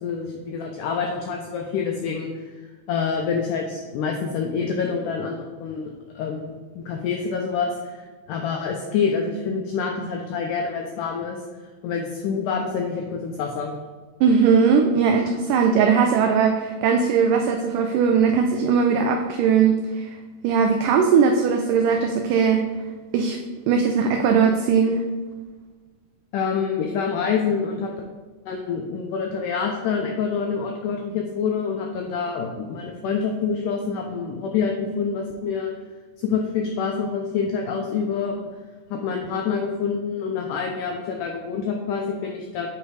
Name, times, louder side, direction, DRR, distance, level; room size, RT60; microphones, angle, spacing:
voice 1, 0.0-2.4 2.9-11.4 11.8-13.8 26.3-27.9 28.5-35.7 36.2-38.4 38.9-42.7, left 5 dB, 90° left, 2 dB, 1.8 m, -27 dB
voice 2, 14.2-20.2 20.4-22.6 23.1-23.4 23.7-25.0, right 6 dB, 90° right, 5 dB, 1.9 m, -19 dB
8.3 x 3.3 x 4.7 m, 1.4 s
omnidirectional pair, 4.3 m